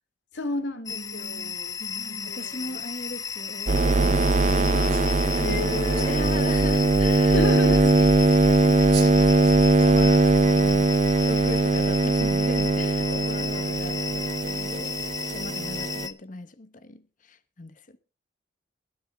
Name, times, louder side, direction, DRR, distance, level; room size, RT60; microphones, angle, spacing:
voice 1, 0.3-2.8 4.7-6.1 7.3-8.0 13.4-13.6, left 2 dB, 90° left, 2.1 m, -33 dB
voice 2, 0.9-18.0, left 2 dB, 45° left, 1.0 m, -39 dB
sound 1, 0.9-16.1, left 7 dB, 20° left, 0.6 m, -34 dB
sound 2, 3.7-16.1, right 3 dB, 40° right, 0.6 m, -21 dB
sound 3, 4.9-5.2 5.9-6.4 7.3-7.4 8.6-8.7 8.9-9.1 9.4-9.9 10.4-10.6, right 9 dB, 65° right, 7.3 m, -39 dB
21.5 x 7.9 x 3.5 m
head